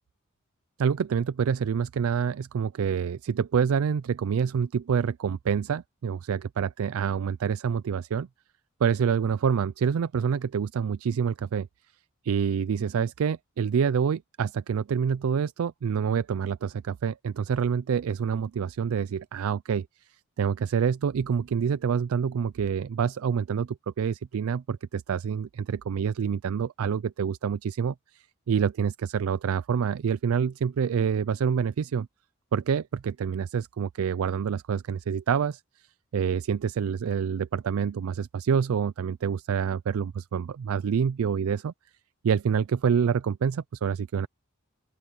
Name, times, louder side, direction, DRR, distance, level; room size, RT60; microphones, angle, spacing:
voice 1, 0.8-8.3 8.8-11.7 12.2-19.9 20.4-32.1 32.5-35.6 36.1-41.7 42.2-44.3, right 7 dB, 85° right, 0.4 m, -27 dB
open air
head